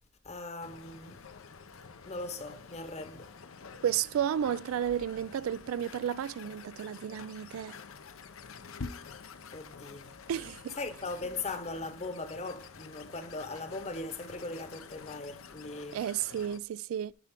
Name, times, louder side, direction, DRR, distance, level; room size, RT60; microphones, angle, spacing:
voice 1, 0.2-1.2 2.0-3.3 9.5-10.1 10.8-16.0, left 3 dB, 30° left, 1.0 m, -39 dB
sound 1, 0.6-16.6, left 5 dB, 70° left, 0.7 m, -48 dB
voice 2, 3.8-7.8 10.3-10.7 15.9-17.1, right 9 dB, 75° right, 0.3 m, -32 dB
11.0 x 5.7 x 3.6 m
head